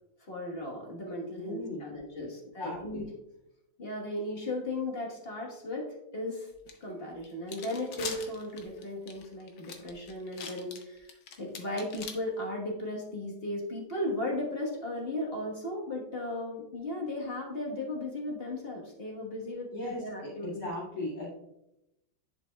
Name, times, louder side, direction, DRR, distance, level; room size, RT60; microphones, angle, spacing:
voice 1, 0.3-3.0 3.8-5.9 6.1-6.5 6.8-20.7, left 1 dB, 35° left, -1 dB, 1.4 m, -36 dB
voice 2, 1.4-2.0 2.6-3.0 19.7-21.3, left 1 dB, 55° left, -9 dB, 2.7 m, -38 dB
sound 1, 6.7-6.8 7.2-12.1, left 6 dB, 70° left, 1.4 m, -42 dB
10.5 x 5.5 x 2.3 m, 0.89 s
omnidirectional pair, 2.1 m